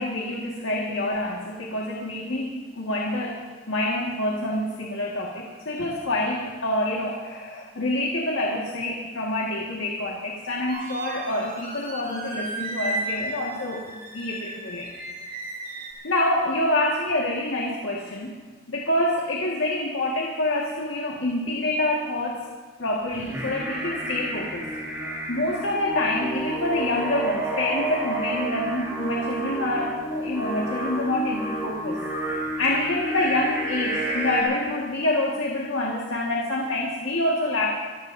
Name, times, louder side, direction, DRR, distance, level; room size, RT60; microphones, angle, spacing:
voice 1, 0.0-3.4 3.7-14.9 16.0-18.3 18.7-22.4 22.8-32.0 32.3-37.7, left 1 dB, 80° left, -2 dB, 1.7 m, -27 dB
sound 1, 10.7-15.9, right 1 dB, 45° right, 5.3 m, -34 dB
Singing, 23.1-34.4, right 1 dB, 10° right, 4.3 m, -30 dB
26.0 x 16.0 x 2.7 m, 1.5 s
head